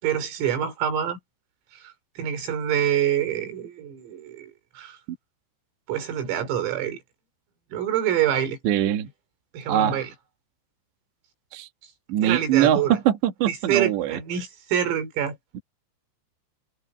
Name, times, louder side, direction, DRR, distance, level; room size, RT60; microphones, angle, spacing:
voice 1, 0.0-1.2 1.7-5.0 5.9-7.0 7.7-8.6 9.5-10.1 12.2-13.0 13.5-15.4, right 10 dB, 80° right, 6.9 m, -26 dB
voice 2, 8.6-9.1 9.7-10.0 11.5-11.7 12.1-14.2 15.5-15.6, right 11 dB, 65° right, 4.0 m, -22 dB
omnidirectional pair, 5.9 m